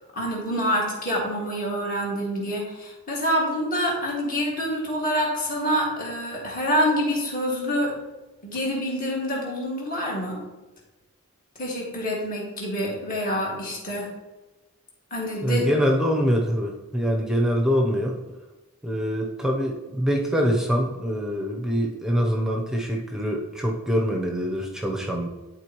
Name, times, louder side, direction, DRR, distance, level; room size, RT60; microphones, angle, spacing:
voice 1, 0.1-7.9 8.4-10.4 11.6-14.1 15.1-15.7, equal, 40° left, -3 dB, 2.1 m, -26 dB
voice 2, 15.4-18.2 18.8-25.3, equal, ahead, 1 dB, 0.7 m, -24 dB
11.5 x 4.3 x 3.0 m, 1.1 s
head